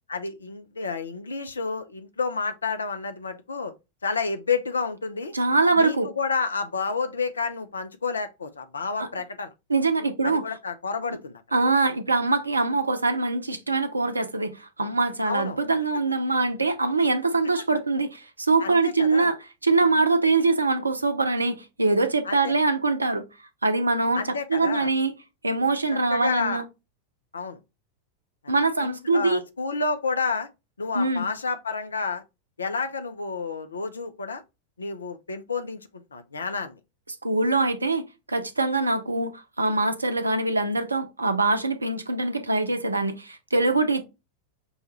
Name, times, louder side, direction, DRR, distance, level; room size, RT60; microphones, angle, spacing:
voice 1, 0.1-3.7 4.0-5.3 5.8-9.5 10.2-11.4 15.2-15.6 18.6-19.3 22.2-22.5 24.1-24.9 26.1-26.6 27.3-27.6 28.8-30.5 30.8-32.2 32.6-34.4 34.8-35.8 36.1-36.8, left 4 dB, 75° left, 0.5 m, -30 dB
voice 2, 5.3-6.1 9.0-9.1 9.7-10.4 11.5-23.2 23.6-24.2 24.5-25.1 25.4-26.6 28.5-29.4 30.9-31.3 37.2-44.0, right 3 dB, 80° right, 0.5 m, -23 dB
5.4 x 2.3 x 2.9 m
figure-of-eight pair, 90°, 0 cm